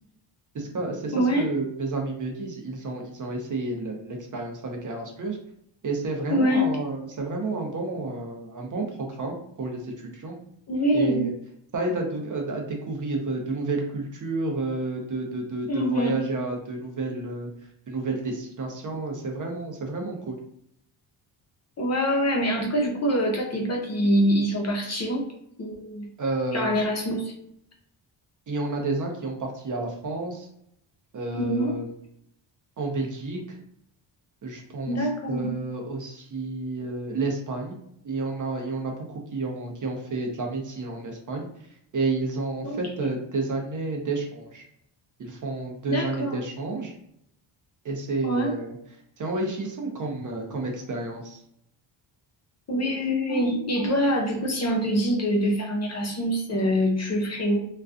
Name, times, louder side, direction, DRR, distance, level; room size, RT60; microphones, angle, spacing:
voice 1, 0.5-5.4 5.8-10.4 10.9-11.3 11.7-17.5 17.9-20.4 26.2-26.7 28.5-30.5 31.1-31.9 32.8-33.6 34.4-35.0 35.3-37.8 38.0-39.0 39.3-41.5 41.9-44.6 45.2-46.9 47.8-48.8 49.2-51.4, right 3 dB, 40° right, 2 dB, 0.6 m, -30 dB
voice 2, 1.1-1.5 6.3-6.7 10.7-11.2 15.7-16.2 21.8-25.3 25.6-26.1 26.5-27.3 31.3-31.8 34.9-35.5 42.6-43.1 45.9-46.4 48.2-48.6 52.7-57.7, equal, 35° left, 1 dB, 0.5 m, -25 dB
2.4 x 2.2 x 2.4 m, 0.73 s
cardioid pair, 95°, 48 cm